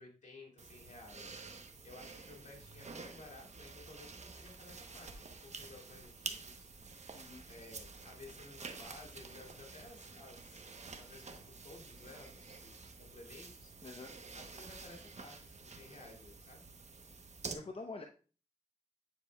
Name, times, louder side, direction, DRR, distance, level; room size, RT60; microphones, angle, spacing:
voice 1, 0.0-1.4 1.8-6.7 7.5-10.7 11.0-13.9 14.3-16.6, left 2 dB, 75° left, 0 dB, 2.3 m, -55 dB
sound 1, 0.6-17.5, right 4 dB, 65° right, 0.9 m, -49 dB
voice 2, 7.1-7.4 13.8-14.1 17.5-18.0, left 3 dB, 50° left, 3 dB, 0.7 m, -46 dB
9.9 x 4.5 x 2.3 m, 0.36 s
cardioid pair, 50°, 13 cm